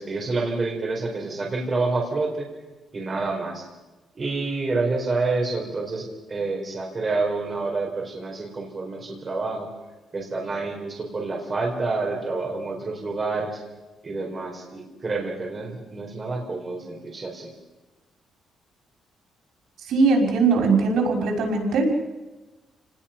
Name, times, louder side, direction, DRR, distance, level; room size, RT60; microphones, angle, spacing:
voice 1, 0.0-2.5 2.9-3.6 4.1-9.7 10.1-13.6 14.0-17.5, right 3 dB, 25° right, 0 dB, 4.4 m, -28 dB
voice 2, 19.9-21.9, right 4 dB, 80° right, 1 dB, 6.0 m, -20 dB
29.0 x 19.5 x 5.9 m, 1.1 s
cardioid pair, 175°, 0 cm